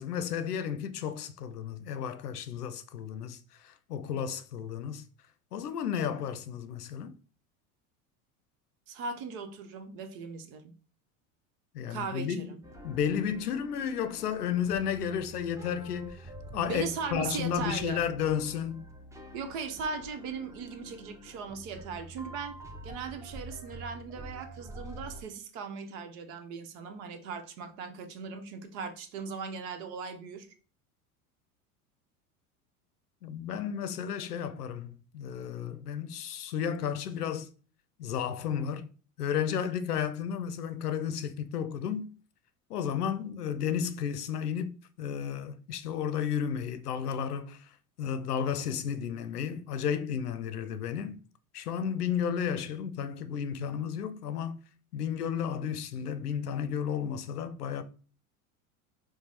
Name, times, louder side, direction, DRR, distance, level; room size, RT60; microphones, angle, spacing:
voice 1, 0.0-5.0 5.5-7.2 11.7-12.5 12.8-18.9 33.2-37.5 38.0-38.9 39.2-42.1 42.7-47.7 48.0-51.2 51.5-54.6 54.9-57.8, left 8 dB, 90° left, 0.6 m, -33 dB
voice 2, 8.9-10.7 11.9-12.6 16.5-18.1 19.3-22.6 22.8-30.5, right 5 dB, 60° right, 1.0 m, -38 dB
sound 1, 12.6-25.2, right 1 dB, 5° right, 0.7 m, -47 dB
4.7 x 2.2 x 4.2 m
hypercardioid pair, 85°, 45 cm